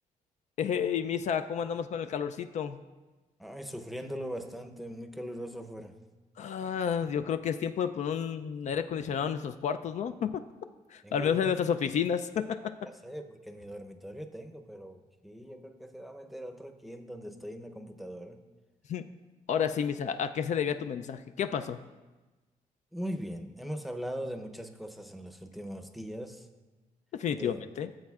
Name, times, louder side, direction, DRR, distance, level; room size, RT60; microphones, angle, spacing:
voice 1, 0.6-2.8 6.4-10.4 10.9-12.7 18.9-19.0 19.5-21.8 27.2-27.9, left 7 dB, 60° left, 10 dB, 0.4 m, -31 dB
voice 2, 3.4-5.9 11.0-11.6 12.8-18.5 22.9-26.5 27.3-27.6, equal, ahead, 5 dB, 0.7 m, -40 dB
16.0 x 7.6 x 2.4 m, 1.2 s
cardioid pair, 115°, 14 cm